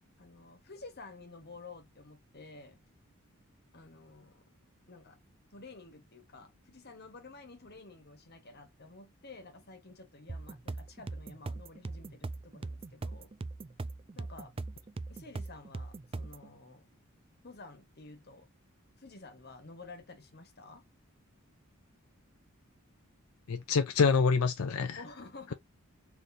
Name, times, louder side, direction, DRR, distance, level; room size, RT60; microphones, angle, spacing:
voice 1, 0.2-2.8 3.7-4.4 4.9-5.2 5.5-13.3 14.1-14.5 15.1-16.9 17.4-18.5 19.0-20.8 25.0-25.5, left 3 dB, 50° left, 1.4 m, -51 dB
sound 1, 10.3-16.5, right 3 dB, 25° right, 0.3 m, -40 dB
voice 2, 23.5-25.0, left 5 dB, 85° left, 0.5 m, -26 dB
4.2 x 3.3 x 2.7 m
head